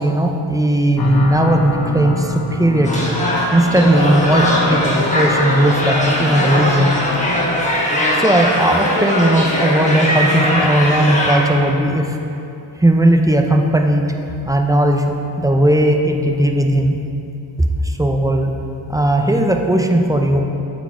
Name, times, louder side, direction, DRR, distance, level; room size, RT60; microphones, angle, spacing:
voice 1, 0.0-3.1 3.5-6.9 8.2-12.2 12.8-14.1 14.5-17.0 17.8-18.5 18.9-20.4, right 1 dB, 5° right, 3 dB, 0.5 m, -16 dB
sound 1, 1.0-7.8, left 2 dB, 50° left, 0.9 m, -28 dB
sound 2, 2.8-11.6, left 1 dB, 15° left, 1.6 m, -19 dB
8.0 x 4.2 x 4.9 m, 2.8 s
cardioid pair, 55°, 48 cm